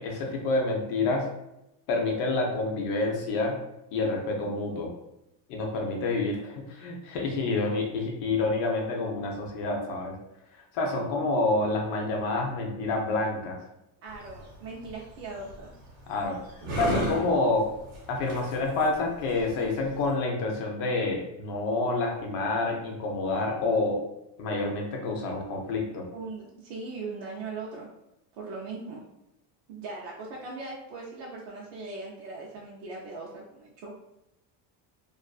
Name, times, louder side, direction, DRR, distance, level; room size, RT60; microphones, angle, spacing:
voice 1, 0.0-1.3 1.9-3.6 3.9-4.9 5.5-10.2 10.7-13.6 16.1-16.4 16.8-17.7 18.1-24.0 24.4-26.0, left 3 dB, 55° left, 0 dB, 0.6 m, -28 dB
voice 2, 14.0-15.7 26.1-27.9 28.3-29.0 29.7-33.9, right 3 dB, 85° right, -3 dB, 0.6 m, -39 dB
sound 1, 14.1-20.1, right 1 dB, 55° right, 1.0 m, -36 dB
2.4 x 2.4 x 2.2 m, 0.86 s
cardioid pair, 175°, 45 cm